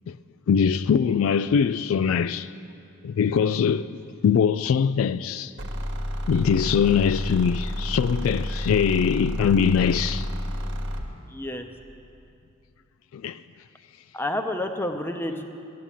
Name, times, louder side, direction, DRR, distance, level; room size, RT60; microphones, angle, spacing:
voice 1, 0.5-2.5 3.0-5.5 6.3-10.3 13.1-13.4, left 7 dB, 65° left, 0.3 m, -22 dB
sound 1, 5.6-11.1, equal, 55° right, 1.2 m, -30 dB
voice 2, 11.3-11.7 14.1-15.4, left 1 dB, 10° left, 0.7 m, -29 dB
14.0 x 8.5 x 9.1 m
head